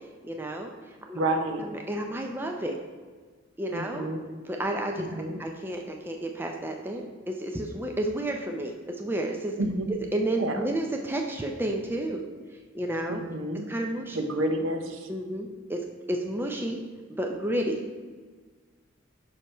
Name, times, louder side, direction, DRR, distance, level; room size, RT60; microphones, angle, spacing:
voice 1, 0.2-0.7 1.1-1.2 1.7-2.8 3.6-4.1 4.5-5.1 5.4-9.5 9.9-12.2 12.7-13.2 13.7-14.2 15.1-15.8 16.1-16.8 17.1-17.8, right 1 dB, 10° right, 2 dB, 0.4 m, -31 dB
voice 2, 1.1-1.7 3.7-4.2 5.0-5.4 9.6-9.8 10.4-10.6 13.1-13.6 14.1-15.1, right 1 dB, 75° right, 5 dB, 0.7 m, -29 dB
5.6 x 5.1 x 4.3 m, 1.5 s
head